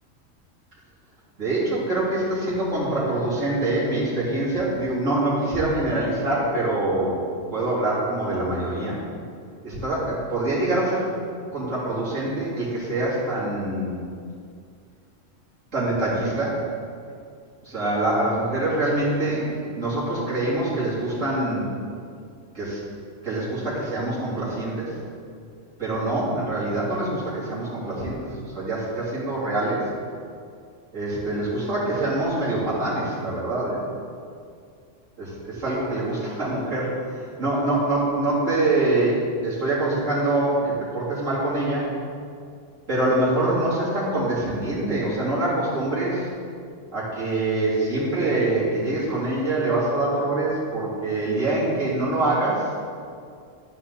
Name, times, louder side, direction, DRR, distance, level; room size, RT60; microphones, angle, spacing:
voice 1, 1.3-7.2 7.5-9.0 9.6-11.1 11.5-14.0 15.7-16.7 17.6-21.7 22.5-22.8 23.2-25.0 25.8-29.9 30.9-33.8 35.2-41.9 42.9-46.3 46.9-52.7, right 2 dB, 80° right, -9 dB, 4.0 m, -25 dB
12.0 x 9.8 x 4.2 m, 2.3 s
omnidirectional pair, 1.3 m